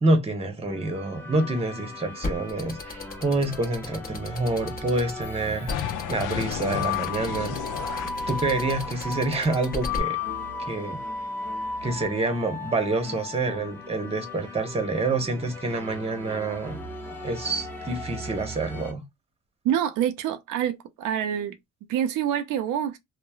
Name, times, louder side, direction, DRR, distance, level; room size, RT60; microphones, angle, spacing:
voice 1, 0.0-7.6 8.3-10.2 10.7-11.0 11.8-16.8 17.2-19.0, right 2 dB, 20° right, 0.9 m, -27 dB
sound 1, 0.6-18.9, left 4 dB, 5° left, 0.9 m, -36 dB
sound 2, 2.2-10.0, left 3 dB, 30° left, 0.9 m, -35 dB
sound 3, 5.7-10.1, left 9 dB, 85° left, 0.5 m, -34 dB
voice 2, 19.6-21.5 21.9-23.0, right 10 dB, 85° right, 0.5 m, -26 dB
3.0 x 2.1 x 2.3 m
cardioid pair, 90°, 30 cm